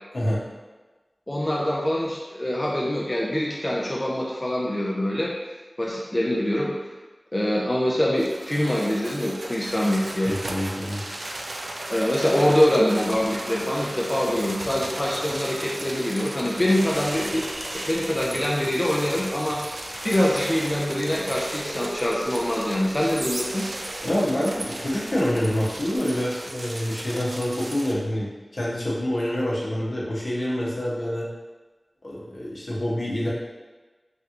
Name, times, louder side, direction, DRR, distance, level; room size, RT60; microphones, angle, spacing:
voice 1, 1.3-5.3 5.8-6.7 7.3-10.3 11.9-17.4 17.7-19.6 20.0-23.6, left 1 dB, 30° left, -4 dB, 0.4 m, -24 dB
sound 1, 8.2-27.9, right 1 dB, 65° right, 0.3 m, -35 dB
voice 2, 10.2-11.0 24.0-31.3 32.0-33.3, equal, 65° left, -6 dB, 0.8 m, -26 dB
Human voice, 16.6-26.0, equal, 85° right, 0.8 m, -41 dB
3.3 x 2.9 x 2.4 m, 1.3 s
wide cardioid pair, 55°, 0 cm